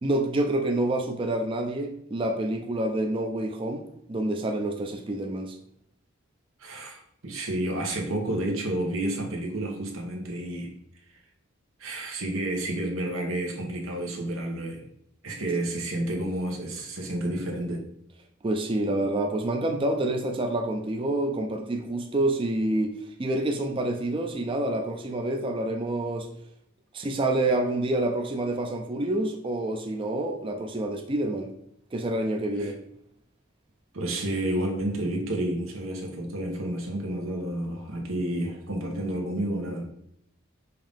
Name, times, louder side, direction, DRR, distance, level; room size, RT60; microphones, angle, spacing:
voice 1, 0.0-3.8 4.1-5.6 18.4-22.9 23.2-26.3 26.9-31.5 31.9-32.8, right 1 dB, 25° right, 3 dB, 0.4 m, -27 dB
voice 2, 6.6-10.7 11.1-11.2 11.8-14.8 15.2-17.8 32.6-32.7 33.9-39.8, right 1 dB, 90° right, 1 dB, 1.1 m, -30 dB
5.6 x 2.7 x 3.5 m, 0.74 s
head